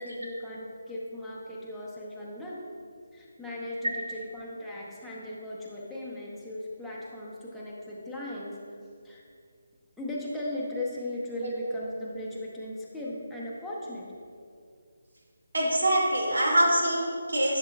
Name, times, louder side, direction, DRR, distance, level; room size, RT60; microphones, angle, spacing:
voice 1, 0.0-2.6 3.1-8.6 9.0-9.2 10.0-14.1, left 1 dB, ahead, -8 dB, 0.8 m, -37 dB
voice 2, 15.5-17.6, right 1 dB, 80° right, -2 dB, 1.7 m, -25 dB
10.5 x 6.7 x 2.3 m, 2.3 s
figure-of-eight pair, 155°, 0 cm